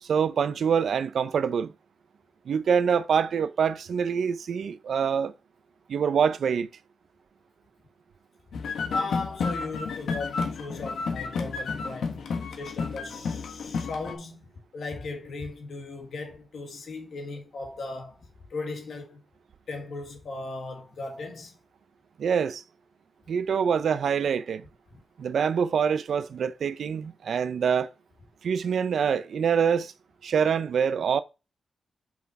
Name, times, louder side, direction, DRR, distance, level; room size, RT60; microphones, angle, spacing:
voice 1, 0.0-1.7 2.5-5.3 5.9-6.7 22.2-22.6 23.3-24.7 25.2-27.9 28.4-29.9 30.2-31.2, right 7 dB, 70° right, 0.5 m, -25 dB
sound 1, 8.5-14.1, left 4 dB, 90° left, 1.5 m, -31 dB
voice 2, 8.9-12.2 12.5-18.2 18.5-19.2 19.7-21.5, left 3 dB, 60° left, 1.9 m, -37 dB
5.9 x 5.8 x 4.8 m
wide cardioid pair, 170°, 0 cm